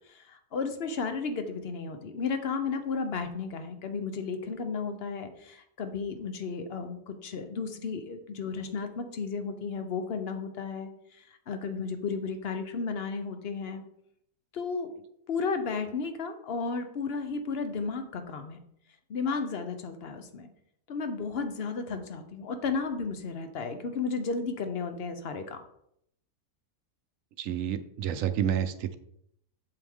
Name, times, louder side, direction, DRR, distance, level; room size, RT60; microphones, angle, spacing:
voice 1, 0.1-10.9 11.5-13.8 14.5-14.9 15.3-18.6 19.1-20.5 20.9-25.6, left 4 dB, 45° left, 7 dB, 0.9 m, -33 dB
voice 2, 27.4-29.0, right 9 dB, 65° right, 11 dB, 0.9 m, -29 dB
8.0 x 6.9 x 3.6 m, 0.73 s
omnidirectional pair, 1.7 m